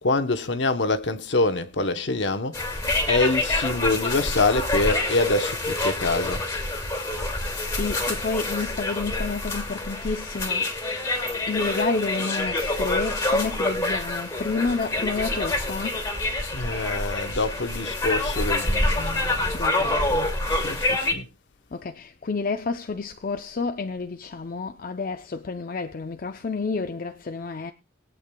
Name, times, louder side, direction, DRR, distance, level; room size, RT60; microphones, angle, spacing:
voice 1, 0.0-2.7 3.1-6.5 16.5-19.6 20.5-21.3, left 2 dB, 65° left, 0.9 m, -25 dB
sound 1, 2.5-21.1, left 2 dB, 15° left, 1.9 m, -26 dB
voice 2, 7.6-10.7 11.5-16.0 19.5-20.3 21.7-27.7, left 4 dB, 45° left, 0.5 m, -30 dB
21.0 x 8.5 x 2.2 m
head